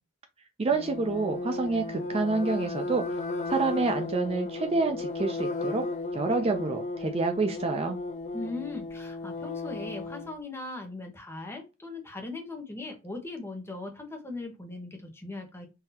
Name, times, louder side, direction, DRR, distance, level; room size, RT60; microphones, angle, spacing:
voice 1, 0.6-3.0 3.5-5.8 6.1-8.0, right 3 dB, 30° right, 0.4 m, -28 dB
sound 1, 0.7-10.3, left 3 dB, 35° left, 0.5 m, -34 dB
voice 2, 8.3-15.7, left 2 dB, 10° left, 0.9 m, -39 dB
3.8 x 2.7 x 2.7 m
head